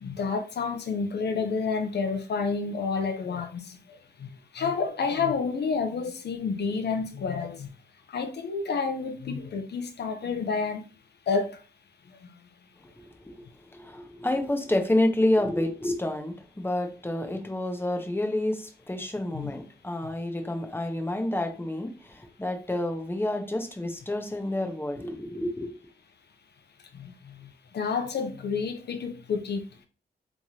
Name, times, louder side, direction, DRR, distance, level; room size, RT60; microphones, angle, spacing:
voice 1, 0.0-3.8 4.2-4.3 4.5-7.7 8.1-10.8 11.3-11.6 19.3-19.5 26.9-29.6, left 5 dB, 70° left, 0.7 m, -29 dB
voice 2, 13.0-25.7, left 1 dB, 10° left, 0.8 m, -29 dB
3.6 x 3.1 x 2.8 m
cardioid pair, 70°, 18 cm